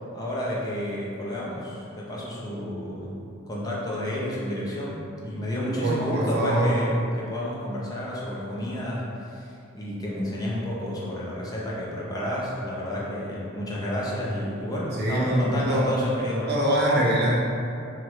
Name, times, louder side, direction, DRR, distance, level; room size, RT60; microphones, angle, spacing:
voice 1, 0.1-3.1 3.5-16.6, left 1 dB, 20° left, -6 dB, 0.4 m, -30 dB
voice 2, 5.8-6.8 14.9-15.9 16.5-17.6, right 1 dB, 50° right, -5 dB, 0.6 m, -23 dB
3.0 x 2.4 x 2.9 m, 2.6 s
head